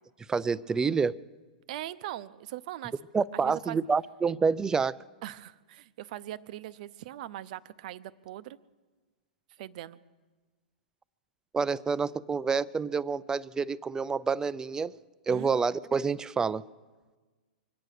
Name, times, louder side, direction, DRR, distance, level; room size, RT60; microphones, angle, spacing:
voice 1, 0.3-1.2 3.1-5.0 11.5-14.9 15.3-16.6, right 5 dB, 10° right, 0.4 m, -28 dB
voice 2, 1.7-2.9 3.4-3.8 5.2-8.6 9.6-10.0 15.3-15.6, right 14 dB, 55° right, 0.7 m, -40 dB
24.5 x 9.1 x 6.6 m
hypercardioid pair, 115°, 5 cm